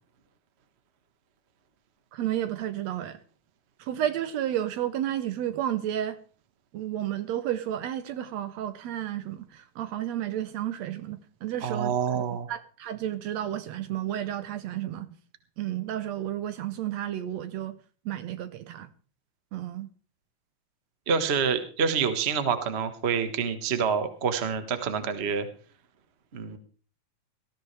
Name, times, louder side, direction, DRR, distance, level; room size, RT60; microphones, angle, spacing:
voice 1, 2.1-3.2 3.8-6.2 6.7-12.2 12.5-15.1 15.6-17.8 18.1-18.9 19.5-19.9, right 11 dB, 70° right, 1.9 m, -32 dB
voice 2, 11.6-12.5 21.1-25.5 26.3-26.6, right 6 dB, 35° right, 1.0 m, -27 dB
19.0 x 14.0 x 3.3 m
omnidirectional pair, 3.4 m